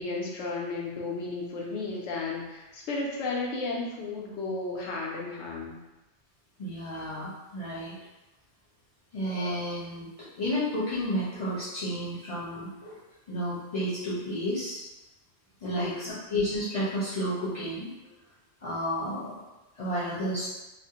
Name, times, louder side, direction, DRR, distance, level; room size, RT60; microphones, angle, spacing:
voice 1, 0.0-5.8 15.6-16.1, left 3 dB, 90° left, -2 dB, 0.9 m, -33 dB
voice 2, 6.6-8.0 9.1-13.0 13.3-14.8 15.6-17.9 18.6-19.3 19.8-20.5, equal, 40° left, -8 dB, 0.6 m, -31 dB
2.5 x 2.1 x 2.8 m, 1.0 s
omnidirectional pair, 1.1 m